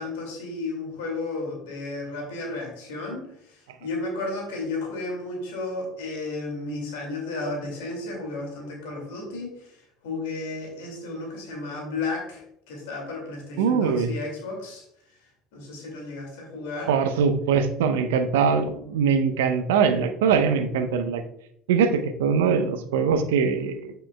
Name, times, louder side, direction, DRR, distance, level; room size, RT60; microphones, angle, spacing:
voice 1, 0.0-9.8 10.0-14.8 15.5-16.9, left 3 dB, 70° left, 0 dB, 2.2 m, -33 dB
voice 2, 13.6-14.1 16.9-21.2 21.7-23.9, right 6 dB, 70° right, 9 dB, 0.6 m, -22 dB
8.7 x 6.6 x 2.2 m, 0.73 s
figure-of-eight pair, 65°, 0 cm